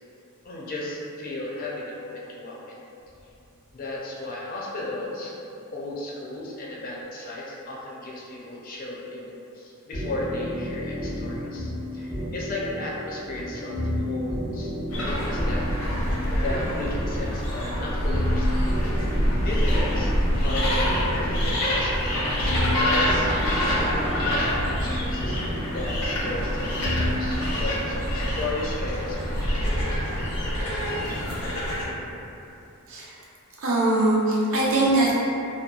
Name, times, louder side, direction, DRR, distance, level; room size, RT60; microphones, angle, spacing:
voice 1, 0.4-2.8 3.2-3.3 3.7-5.3 5.7-15.7 16.2-18.7 19.1-23.4 23.8-26.7 27.2-29.4, left 2 dB, 40° left, -5 dB, 0.4 m, -35 dB
sound 1, 9.9-27.4, equal, 30° right, 0.8 m, -32 dB
sound 2, 14.9-31.9, equal, 80° left, 0.6 m, -26 dB
voice 2, 33.6-35.1, right 2 dB, 65° right, -6 dB, 0.6 m, -21 dB
2.8 x 2.2 x 2.3 m, 2.7 s
head